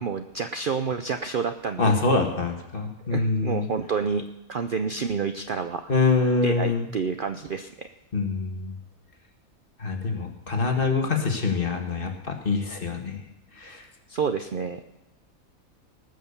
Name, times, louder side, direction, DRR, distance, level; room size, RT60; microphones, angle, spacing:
voice 1, 0.0-1.9 3.1-4.2 4.5-5.9 6.4-7.9 14.1-14.8, right 5 dB, 50° right, 8 dB, 0.6 m, -29 dB
voice 2, 1.8-3.6 5.9-6.9 8.1-8.7 9.8-13.2 13.6-13.8, left 4 dB, 40° left, 3 dB, 1.8 m, -25 dB
19.0 x 6.6 x 7.0 m, 0.93 s
omnidirectional pair, 1.5 m